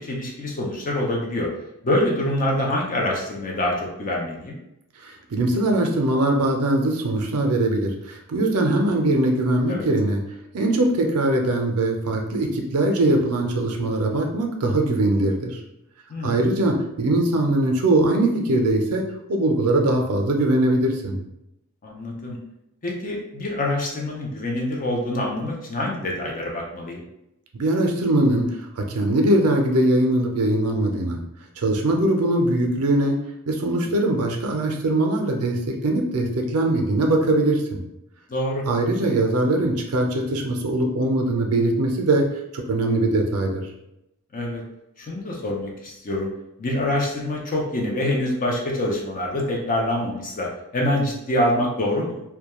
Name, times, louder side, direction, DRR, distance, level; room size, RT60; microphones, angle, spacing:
voice 1, 0.0-1.5 1.8-4.6 9.7-9.9 16.1-16.4 21.8-22.4 22.8-27.0 33.8-33.9 38.3-38.7 44.3-44.6 45.0-46.3 46.6-50.5 50.7-52.2, left 1 dB, 40° left, -1 dB, 0.4 m, -25 dB
voice 2, 5.0-10.2 10.5-15.6 16.2-19.0 19.3-21.2 27.6-28.5 28.8-31.2 31.6-33.2 33.5-37.8 38.7-42.3 42.5-43.6, right 1 dB, 80° right, 3 dB, 0.5 m, -21 dB
2.2 x 2.2 x 2.9 m, 0.85 s
head